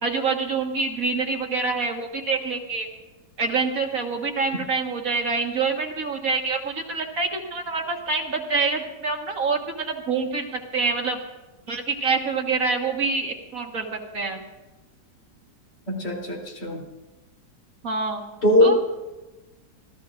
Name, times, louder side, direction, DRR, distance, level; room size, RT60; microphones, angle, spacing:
voice 1, 0.0-2.9 3.4-11.2 11.7-14.4 17.8-18.2 18.6-18.8, right 4 dB, 50° right, 2 dB, 1.9 m, -26 dB
voice 2, 15.9-16.8 18.4-18.8, left 1 dB, 70° left, -1 dB, 3.8 m, -20 dB
26.5 x 14.5 x 2.5 m, 1.1 s
omnidirectional pair, 1.9 m